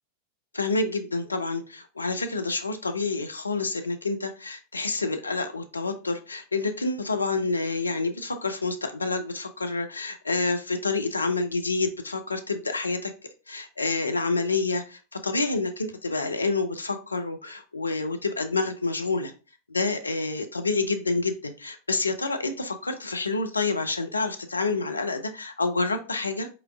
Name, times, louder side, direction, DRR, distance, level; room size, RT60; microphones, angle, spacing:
voice 1, 0.5-19.3 19.7-26.5, left 3 dB, 80° left, 7 dB, 0.4 m, -28 dB
4.4 x 3.8 x 2.3 m, 0.35 s
figure-of-eight pair, 90°, 0 cm